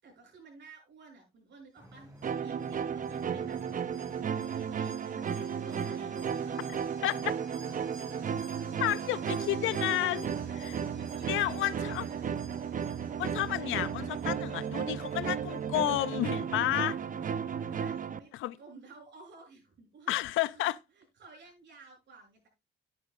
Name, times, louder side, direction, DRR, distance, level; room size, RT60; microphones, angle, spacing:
voice 1, 0.0-3.6 4.4-6.6 8.7-10.6 10.9-12.3 17.6-20.1 20.5-22.5, right 4 dB, 65° right, 7.1 m, -54 dB
sound 1, 1.8-17.9, right 1 dB, 15° right, 3.9 m, -54 dB
sound 2, 2.2-18.2, right 7 dB, 40° right, 0.8 m, -34 dB
Alarm, 2.2-15.6 16.0-16.1, right 3 dB, 80° right, 5.5 m, -55 dB
voice 2, 7.0-7.3 8.8-10.2 10.5-10.8 11.3-12.0 13.2-17.0 18.4-18.6 20.1-20.8, left 15 dB, 85° left, 0.5 m, -31 dB
11.0 x 10.5 x 2.5 m
cardioid pair, 90°, 20 cm